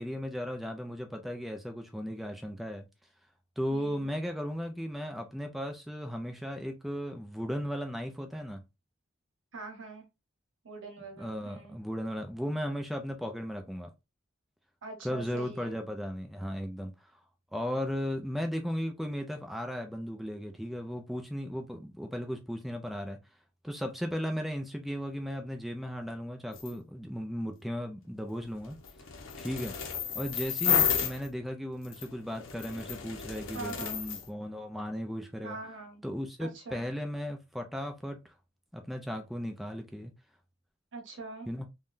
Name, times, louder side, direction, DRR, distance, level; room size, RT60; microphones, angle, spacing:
voice 1, 0.0-2.9 3.6-8.6 11.2-13.9 15.0-17.2 17.5-23.2 23.6-28.8 29.4-29.8 30.1-35.6 36.0-38.3 38.7-40.1 41.5-41.7, equal, ahead, 0.3 m, -36 dB
voice 2, 3.7-4.1 9.5-10.0 10.6-11.8 14.8-15.7 33.5-34.0 35.4-36.0 36.4-36.9 40.9-41.5, right 3 dB, 70° right, 0.9 m, -43 dB
sound 1, 26.5-26.7 28.4-31.3 31.8-34.3, left 7 dB, 80° left, 0.7 m, -32 dB
3.5 x 2.2 x 2.5 m
head